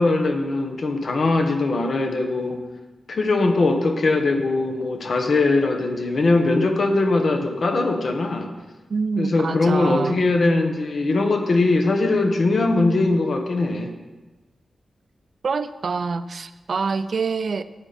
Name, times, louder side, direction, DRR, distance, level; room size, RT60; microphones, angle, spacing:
voice 1, 0.0-2.6 3.1-8.5 9.2-13.9, left 2 dB, 55° left, 4 dB, 1.5 m, -21 dB
voice 2, 8.9-10.2 15.4-17.6, right 4 dB, 55° right, 12 dB, 0.5 m, -26 dB
12.5 x 8.9 x 4.4 m, 1.2 s
wide cardioid pair, 120°, 0 cm